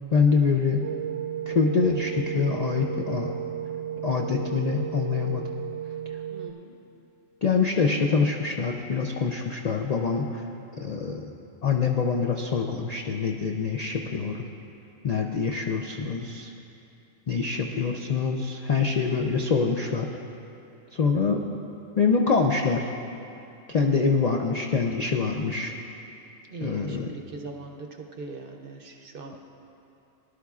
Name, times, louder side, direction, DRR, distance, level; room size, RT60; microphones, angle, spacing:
voice 1, 0.1-0.9 1.5-3.3 4.0-5.5 7.4-10.4 10.8-11.3 11.6-14.4 15.0-16.5 17.3-20.1 20.9-21.5 22.0-22.9 23.7-25.7 26.6-27.1, left 5 dB, 55° left, 1 dB, 0.4 m, -25 dB
sound 1, 0.8-6.5, right 10 dB, 75° right, 1.0 m, -33 dB
voice 2, 6.3-6.7 17.5-18.0 26.4-29.4, right 3 dB, 50° right, 3 dB, 0.8 m, -41 dB
18.5 x 11.5 x 2.4 m, 2.8 s
omnidirectional pair, 1.4 m